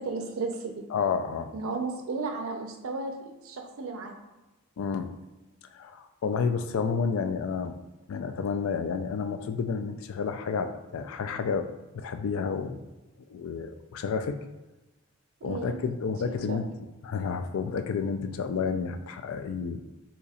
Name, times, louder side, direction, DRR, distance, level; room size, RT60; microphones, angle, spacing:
voice 1, 0.0-0.8 1.5-4.2 15.4-15.8 16.5-16.6, right 3 dB, 75° right, 4 dB, 0.5 m, -34 dB
voice 2, 0.9-1.5 4.8-5.1 5.7-7.8 8.1-11.7 11.9-12.8 13.3-14.4 15.4-16.7 17.0-19.8, left 5 dB, 70° left, 8 dB, 0.3 m, -30 dB
2.9 x 2.4 x 4.0 m, 1.1 s
head